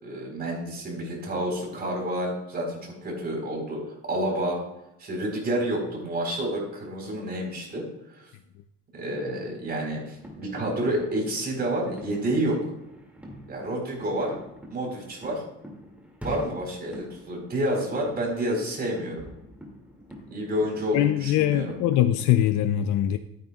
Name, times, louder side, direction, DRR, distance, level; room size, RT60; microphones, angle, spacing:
voice 1, 0.0-3.8 4.1-4.6 5.0-7.8 8.2-8.3 8.9-12.7 13.5-14.4 14.7-15.4 16.2-19.2 20.3-21.7, right 1 dB, 30° right, 0 dB, 4.2 m, -29 dB
sound 1, 10.1-22.5, equal, 5° right, 2.4 m, -45 dB
voice 2, 20.9-23.2, left 12 dB, 70° left, 10 dB, 0.6 m, -22 dB
13.5 x 9.1 x 2.4 m, 0.85 s
cardioid pair, 120°, 30 cm